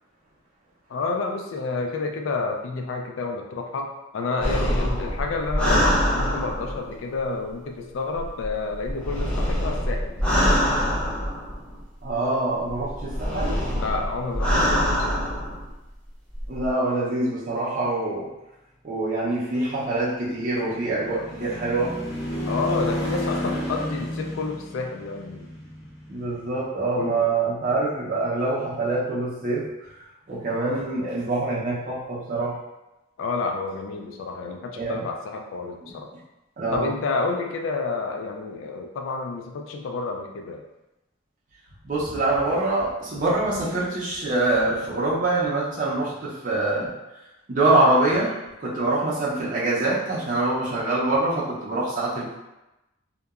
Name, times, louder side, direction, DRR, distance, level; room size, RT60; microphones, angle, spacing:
voice 1, 0.9-10.2 13.7-15.2 22.5-25.5 27.0-27.3 33.2-36.1 36.7-40.6, left 3 dB, 85° left, 2 dB, 0.3 m, -30 dB
sound 1, 4.4-6.9 8.2-11.8 12.7-15.6 16.3-16.7, equal, 5° left, 0.5 m, -24 dB
voice 2, 12.0-13.6 16.5-18.3 18.8-22.0 26.1-29.6 30.3-32.6 34.8-35.0 35.8-35.9 36.6-36.9 41.8-46.9 47.5-52.4, right 2 dB, 45° right, -8 dB, 0.6 m, -25 dB
sound 2, 20.1-26.6, left 1 dB, 35° left, 1.1 m, -32 dB
2.8 x 2.2 x 2.3 m, 0.97 s
head